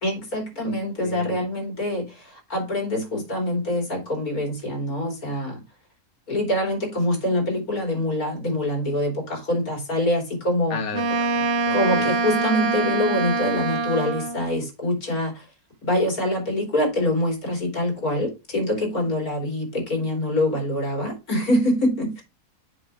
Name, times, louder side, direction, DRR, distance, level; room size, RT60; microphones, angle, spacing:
voice 1, 0.0-5.6 6.3-10.8 11.7-15.4 15.8-22.2, left 1 dB, 90° left, 4.0 m, -25 dB
voice 2, 1.0-1.4 10.7-12.1, left 4 dB, 55° left, 1.6 m, -34 dB
Wind instrument woodwind instrument, 10.9-14.5, right 3 dB, 50° right, 1.0 m, -24 dB
7.8 x 6.2 x 3.6 m
omnidirectional pair, 1.5 m